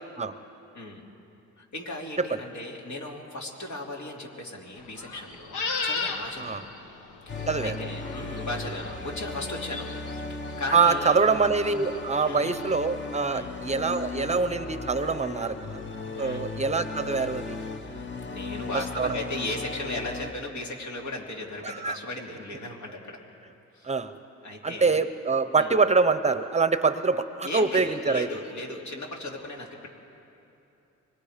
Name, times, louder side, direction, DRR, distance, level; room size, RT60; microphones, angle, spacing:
voice 1, 1.6-6.7 7.3-9.9 10.3-11.2 12.3-12.5 13.3-13.6 16.2-16.5 17.8-23.2 23.7-23.9 24.4-25.0 25.5-25.8 27.4-29.9, left 2 dB, 70° left, 0 dB, 3.1 m, -37 dB
sound 1, 4.8-12.8, left 4 dB, 85° left, 1.5 m, -37 dB
sound 2, 7.3-20.3, left 3 dB, 40° left, 1.2 m, -37 dB
voice 2, 10.7-15.8 16.2-17.6 18.7-19.2 21.6-22.0 23.8-24.1 24.6-28.3, right 4 dB, 20° right, 11 dB, 0.7 m, -25 dB
24.5 x 21.5 x 5.1 m, 2.9 s
cardioid pair, 90°, 30 cm